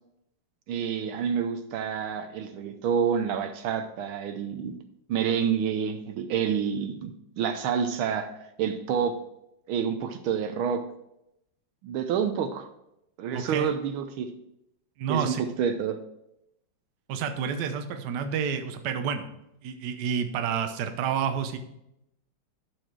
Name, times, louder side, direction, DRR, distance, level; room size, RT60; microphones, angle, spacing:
voice 1, 0.7-4.7 5.1-8.3 8.6-9.2 9.7-10.8 11.8-12.7 13.2-14.3 15.1-16.0, right 7 dB, 75° right, 8 dB, 1.5 m, -28 dB
voice 2, 13.3-13.7 15.0-15.4 17.1-19.3 19.6-21.6, right 7 dB, 60° right, 7 dB, 1.3 m, -29 dB
11.5 x 4.9 x 4.6 m, 0.82 s
omnidirectional pair, 2.4 m